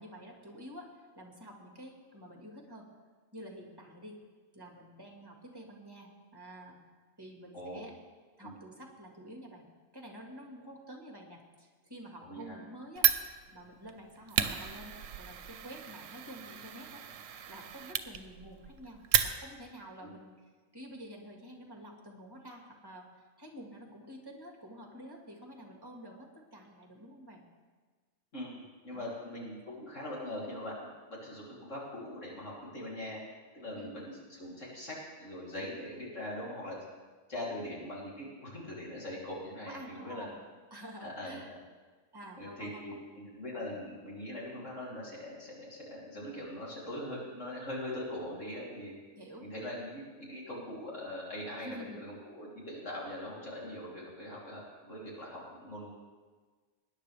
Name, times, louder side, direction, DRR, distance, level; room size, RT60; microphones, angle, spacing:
voice 1, 0.0-2.9 3.3-4.2 4.5-6.8 7.2-8.0 8.4-9.7 9.9-13.1 13.5-17.0 17.5-20.3 20.7-27.5 28.9-29.1 33.7-34.0 39.7-40.4 40.7-41.5 42.1-43.0 43.7-43.9 49.2-49.5 51.6-52.1, equal, 20° right, 1 dB, 1.8 m, -49 dB
voice 2, 12.2-12.6 20.0-20.1 28.3-33.2 33.5-36.8 37.3-40.3 41.0-41.6 42.4-48.9 49.4-55.9, left 1 dB, 70° left, -6 dB, 3.6 m, -42 dB
Fire, 13.0-19.8, right 10 dB, 80° right, 1.1 m, -33 dB
20.5 x 10.0 x 3.4 m, 1.4 s
omnidirectional pair, 1.3 m